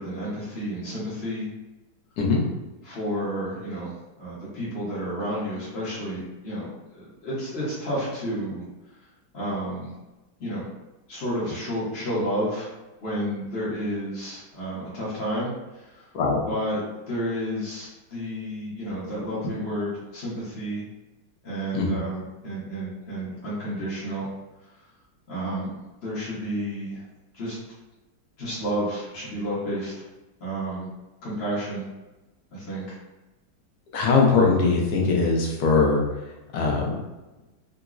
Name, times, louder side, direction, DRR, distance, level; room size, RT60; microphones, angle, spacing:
voice 1, 0.0-1.5 2.8-8.6 9.3-9.9 10.4-10.6 11.1-12.7 13.0-16.0 16.5-16.8 17.1-20.8 21.4-24.3 25.3-25.7 26.0-27.0 27.3-27.6 28.4-29.9 30.4-30.9 31.2-31.8 32.5-32.9, equal, 45° left, -9 dB, 0.9 m, -31 dB
voice 2, 33.9-37.0, left 4 dB, 70° left, -2 dB, 1.1 m, -21 dB
3.8 x 2.1 x 2.4 m, 1.1 s
omnidirectional pair, 1.8 m